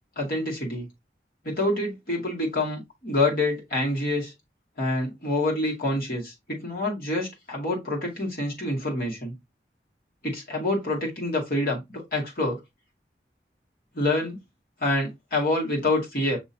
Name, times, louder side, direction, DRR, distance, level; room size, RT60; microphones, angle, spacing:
voice 1, 0.2-0.9 1.4-4.3 4.8-9.3 10.2-12.6 13.9-14.4 14.8-16.4, left 2 dB, 55° left, 2.2 m, -27 dB
6.1 x 3.1 x 2.8 m
head